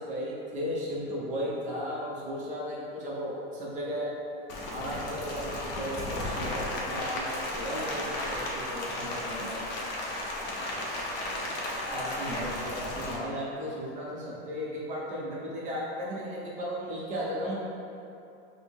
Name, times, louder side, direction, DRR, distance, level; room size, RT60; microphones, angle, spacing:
voice 1, 0.0-4.1 4.7-9.6 11.9-17.5, equal, 25° right, -5 dB, 0.6 m, -35 dB
Rain, 4.5-13.2, left 1 dB, 35° left, 0.6 m, -34 dB
4.9 x 2.1 x 3.5 m, 2.7 s
supercardioid pair, 150°, 32 cm